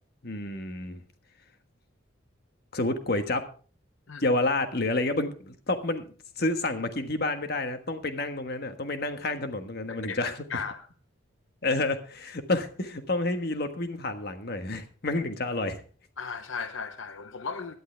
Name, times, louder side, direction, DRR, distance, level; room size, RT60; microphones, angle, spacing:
voice 1, 0.2-1.0 2.7-3.5 4.2-6.0 6.4-10.6 11.6-15.8, left 2 dB, 50° left, 8 dB, 1.4 m, -29 dB
voice 2, 9.9-10.9 16.2-17.7, left 5 dB, 80° left, 10 dB, 0.8 m, -36 dB
16.5 x 11.0 x 3.4 m, 0.40 s
head